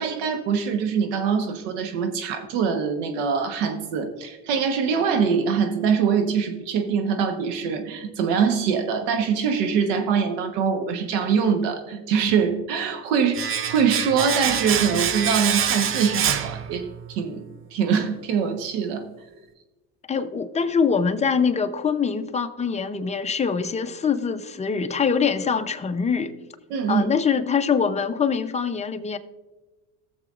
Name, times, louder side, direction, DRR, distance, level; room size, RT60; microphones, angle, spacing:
voice 1, 0.0-19.1 26.7-27.1, right 6 dB, 85° right, 1.2 m, -23 dB
Domestic sounds home sounds, 13.3-17.2 17.4-17.6, right 8 dB, 35° right, 0.6 m, -25 dB
voice 2, 20.1-26.3 26.9-29.2, left 6 dB, 20° left, 0.7 m, -24 dB
17.0 x 7.1 x 2.5 m
supercardioid pair, 105°, 37 cm